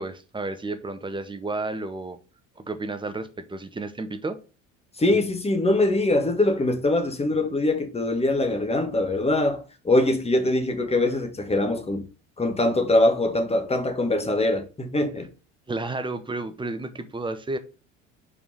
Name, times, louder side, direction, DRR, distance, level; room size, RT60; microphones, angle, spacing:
voice 1, 0.0-2.2 2.6-4.4 15.7-17.6, right 2 dB, 10° right, 1.1 m, -32 dB
voice 2, 5.0-12.1 12.4-15.3, left 2 dB, 15° left, 1.6 m, -23 dB
5.2 x 4.9 x 4.9 m
figure-of-eight pair, 60°, 39 cm